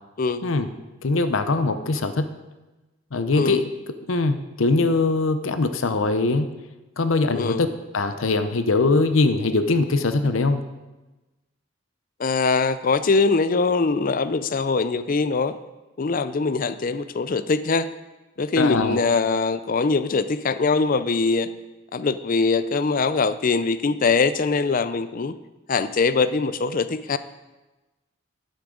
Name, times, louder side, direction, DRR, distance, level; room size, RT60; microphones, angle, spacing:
voice 1, 1.0-2.3 3.1-3.7 4.1-6.5 7.0-7.7 7.9-10.6 18.6-19.0, left 3 dB, 80° left, 10 dB, 0.7 m, -21 dB
voice 2, 7.3-7.6 12.2-15.6 16.0-17.9 18.4-21.5 21.9-25.3 25.7-27.2, left 4 dB, 45° left, 13 dB, 0.4 m, -22 dB
12.0 x 9.3 x 3.8 m, 1.1 s
head